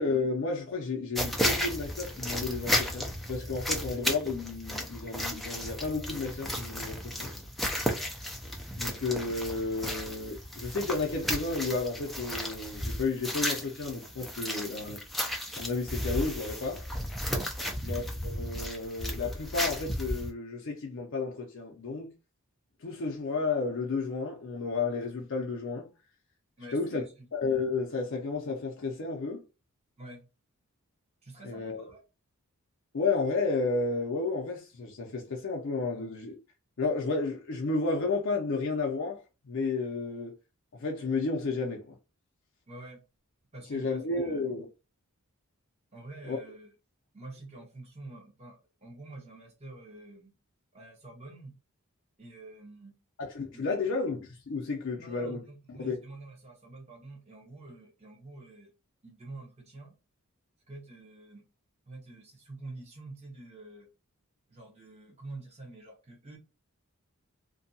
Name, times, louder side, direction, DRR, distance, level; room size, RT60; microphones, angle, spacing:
voice 1, 0.0-7.3 8.8-15.0 15.6-16.9 17.8-22.1 22.8-25.9 26.7-27.0 27.3-29.4 31.4-31.9 32.9-36.4 36.8-40.3 40.7-42.0 43.7-44.7 46.3-46.4 53.2-55.4 55.8-56.0, left 3 dB, 60° left, 0.5 m, -32 dB
sound 1, 1.1-20.3, left 1 dB, ahead, 0.3 m, -34 dB
voice 2, 17.5-17.8 26.6-27.3 30.0-30.3 31.2-32.0 42.7-43.0 43.5-44.5 45.9-46.7 47.1-50.3 50.7-51.5 52.2-53.0 53.5-53.9 55.0-58.7 59.0-60.0 60.7-61.4 61.9-63.9 64.5-66.4, right 2 dB, 30° right, 0.9 m, -47 dB
2.6 x 2.2 x 2.6 m
head